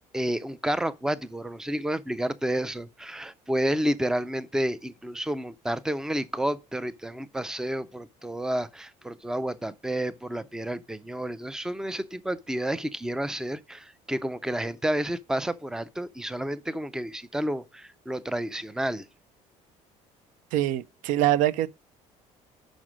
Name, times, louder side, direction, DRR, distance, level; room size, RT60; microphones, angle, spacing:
voice 1, 0.1-19.1, right 1 dB, 5° right, 0.4 m, -30 dB
voice 2, 20.5-21.7, right 13 dB, 85° right, 0.5 m, -24 dB
6.1 x 5.1 x 6.1 m
cardioid pair, 155°, 13 cm